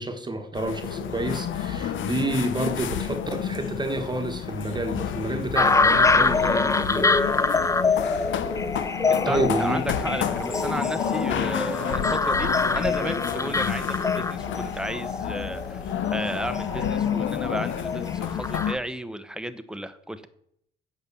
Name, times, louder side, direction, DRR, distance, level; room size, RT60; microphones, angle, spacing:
voice 1, 0.0-7.1 9.2-9.8, right 2 dB, 20° right, 6 dB, 1.3 m, -29 dB
sound 1, 0.5-18.7, left 9 dB, 75° left, 0.9 m, -30 dB
sound 2, 5.6-18.8, left 3 dB, 15° left, 0.5 m, -25 dB
voice 2, 9.1-20.3, right 1 dB, 5° right, 10 dB, 0.9 m, -33 dB
8.1 x 5.8 x 6.9 m, 0.69 s
cardioid pair, 90°, 20 cm